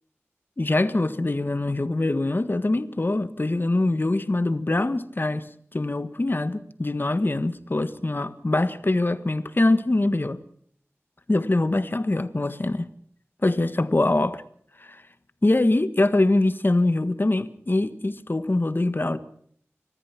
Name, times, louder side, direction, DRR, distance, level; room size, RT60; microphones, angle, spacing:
voice 1, 0.6-5.5 5.7-10.4 11.3-12.9 13.4-14.4 14.8-15.0 15.4-19.2, left 2 dB, 45° left, 11 dB, 1.5 m, -23 dB
29.5 x 14.5 x 6.0 m, 0.62 s
wide cardioid pair, 65°, 5 cm